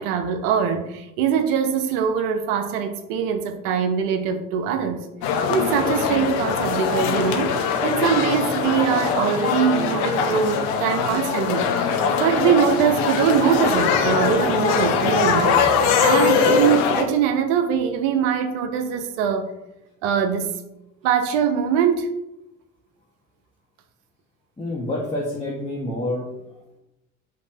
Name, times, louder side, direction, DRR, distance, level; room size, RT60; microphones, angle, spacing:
voice 1, 0.0-5.0 5.5-7.5 7.8-19.5 20.0-20.6 21.0-22.1, right 7 dB, 70° right, 7 dB, 0.6 m, -22 dB
sound 1, 5.2-17.0, left 6 dB, 65° left, 0.6 m, -21 dB
voice 2, 24.6-26.3, left 1 dB, 15° left, -5 dB, 0.9 m, -27 dB
5.2 x 2.7 x 2.6 m, 0.91 s
hypercardioid pair, 50°, 40 cm